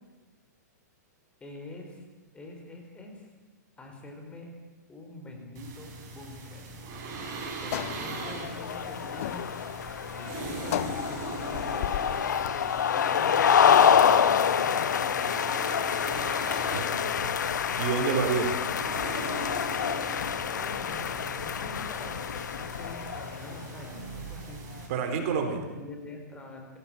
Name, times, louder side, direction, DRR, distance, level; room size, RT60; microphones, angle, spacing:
voice 1, 1.4-2.0 2.3-3.3 3.8-4.5 4.9-6.6 7.6-9.5 10.1-12.0 12.9-15.5 16.5-17.1 20.5-24.6 25.8-26.7, left 2 dB, 10° left, 2 dB, 4.1 m, -45 dB
sound 1, 5.5-24.9, right 3 dB, 30° right, 7.0 m, -41 dB
sound 2, 6.7-12.9, left 14 dB, 50° left, 0.7 m, -37 dB
sound 3, 8.0-23.7, left 8 dB, 85° left, 1.3 m, -27 dB
voice 2, 16.7-17.3 17.8-18.5 24.9-25.6, right 6 dB, 45° right, 6 dB, 4.3 m, -28 dB
24.5 x 17.0 x 8.8 m, 1.2 s
hypercardioid pair, 145°, 10 cm